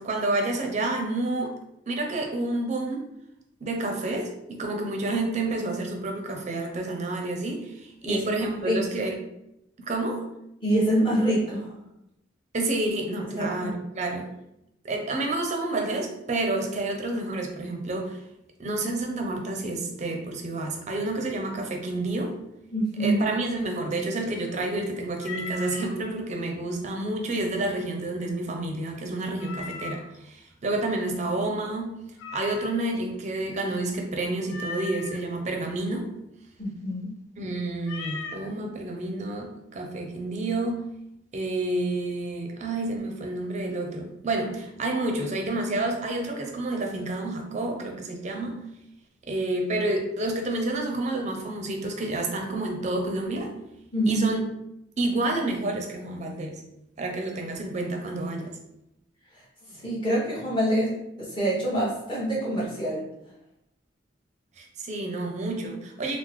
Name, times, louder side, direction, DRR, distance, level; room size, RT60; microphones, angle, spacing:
voice 1, 0.0-1.5 1.9-3.1 3.6-9.1 9.8-10.2 12.5-14.3 14.8-18.2 18.6-22.4 23.0-31.9 32.3-36.1 37.4-40.8 41.3-48.5 49.3-53.5 54.1-54.4 55.0-56.6 57.0-58.5 64.6-66.2, right 2 dB, 40° right, 2 dB, 0.5 m, -29 dB
voice 2, 10.6-11.7 13.4-13.7 22.7-23.2 36.6-37.1 53.9-54.2 59.7-63.0, right 1 dB, 25° left, -7 dB, 1.0 m, -25 dB
Meow, 25.2-25.9 29.4-30.2 32.2-33.0 34.5-35.2 37.8-38.5, left 4 dB, 80° left, 0.4 m, -37 dB
3.5 x 2.0 x 3.0 m, 0.82 s
head